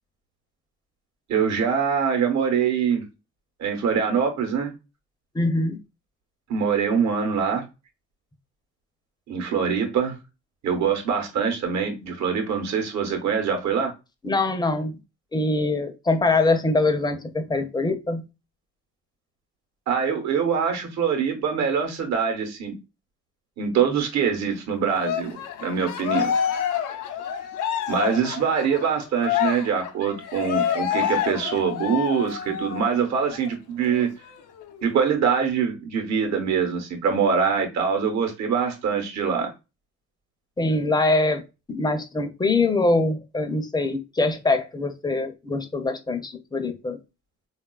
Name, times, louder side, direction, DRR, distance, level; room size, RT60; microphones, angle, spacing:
voice 1, 1.3-3.1 3.6-4.7 6.5-7.6 9.3-10.2 10.6-13.9 19.9-22.8 23.6-26.4 27.9-34.1 34.8-39.5, right 6 dB, 65° right, 0.9 m, -24 dB
voice 2, 5.3-5.8 14.2-15.0 15.3-18.2 40.6-41.4 41.7-47.0, left 2 dB, 15° left, 0.5 m, -23 dB
Cheering, 25.0-32.9 33.3-33.5 33.9-34.9, left 9 dB, 85° left, 0.6 m, -28 dB
3.7 x 2.4 x 2.2 m
cardioid pair, 90°, 30 cm